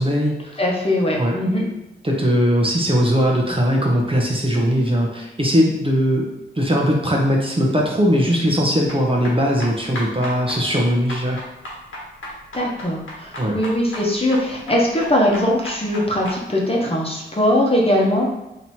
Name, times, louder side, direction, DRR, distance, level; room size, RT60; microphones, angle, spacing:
voice 1, 0.0-0.6 1.2-1.4 2.0-6.3 6.5-11.4 13.4-13.6, equal, 25° right, -1 dB, 0.8 m, -19 dB
voice 2, 0.6-1.7 12.5-18.3, left 1 dB, 30° left, -2 dB, 1.1 m, -20 dB
sound 1, 8.9-16.4, equal, 80° left, 1.3 m, -35 dB
3.2 x 2.9 x 4.2 m, 0.93 s
cardioid pair, 50°, 20 cm